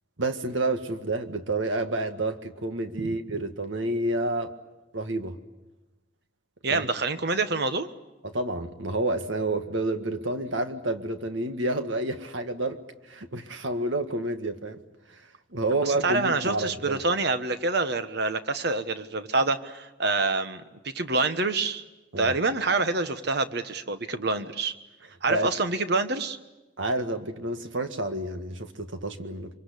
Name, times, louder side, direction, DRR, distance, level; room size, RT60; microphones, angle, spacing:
voice 1, 0.2-4.5 4.9-5.4 6.7-6.9 8.2-12.8 13.1-14.8 15.5-17.0 22.1-22.3 25.3-25.5 26.8-29.5, right 2 dB, 75° right, 7 dB, 1.8 m, -29 dB
voice 2, 6.6-7.9 15.9-21.8 22.2-24.7 25.2-26.4, right 3 dB, 55° right, 10 dB, 1.3 m, -27 dB
25.5 x 24.0 x 8.4 m, 1.1 s
head